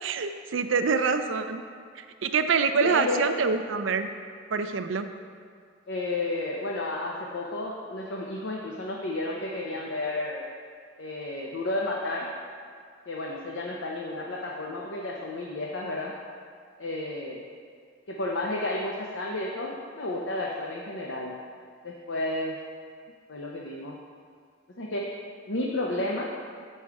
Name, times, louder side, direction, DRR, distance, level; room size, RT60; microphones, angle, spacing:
voice 1, 0.0-1.6 2.0-4.1 4.5-5.1, right 5 dB, 75° right, 8 dB, 0.5 m, -26 dB
voice 2, 2.8-3.3 5.9-10.4 11.0-12.3 13.1-16.1 16.8-17.4 18.1-19.7 20.0-21.3 21.8-22.6 23.3-24.0 24.8-25.1 25.5-26.3, left 2 dB, 75° left, -2 dB, 0.7 m, -32 dB
7.5 x 5.5 x 4.6 m, 2.1 s
head